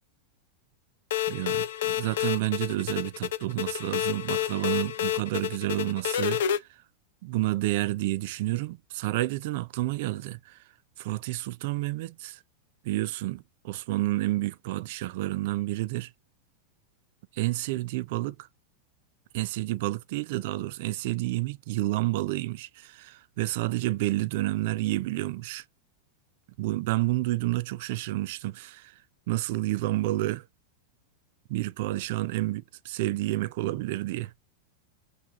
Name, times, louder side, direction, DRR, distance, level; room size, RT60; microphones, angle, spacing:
sound 1, 1.1-6.6, left 11 dB, 75° left, 0.7 m, -29 dB
voice 1, 1.3-6.6 7.2-10.6 11.0-12.4 12.8-16.1 17.3-18.4 19.3-25.6 26.6-28.9 29.3-30.4 31.5-34.3, right 17 dB, 65° right, 0.4 m, -30 dB
5.8 x 2.7 x 2.3 m
hypercardioid pair, 110°, 0 cm